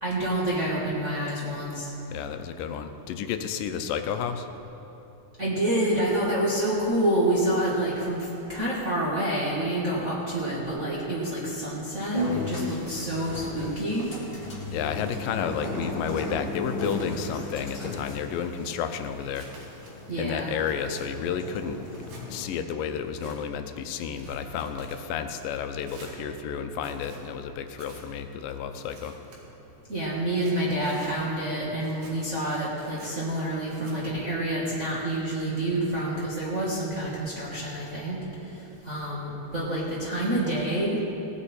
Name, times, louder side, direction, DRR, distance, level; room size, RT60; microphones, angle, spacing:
voice 1, 0.0-1.9 5.4-14.1 20.1-20.5 29.9-38.2 38.8-41.0, right 1 dB, 30° right, -7 dB, 1.4 m, -28 dB
voice 2, 2.1-4.5 14.6-19.5 20.2-21.8 22.3-29.2, left 7 dB, 85° left, 8 dB, 2.3 m, -31 dB
sound 1, 12.1-22.5, left 2 dB, 35° left, 0.9 m, -35 dB
Tearing, 16.4-17.0 17.6-18.2 18.7-19.9 20.4-21.1 21.9-22.2 22.9-23.4 24.0-25.0 25.8-26.2 26.7-27.2 27.8-28.1 28.7-29.4 30.1-31.1 31.7-32.2 32.7-33.1 33.7-34.0, right 2 dB, 75° right, 3.4 m, -50 dB
17.5 x 9.7 x 4.4 m, 2.9 s
omnidirectional pair, 3.8 m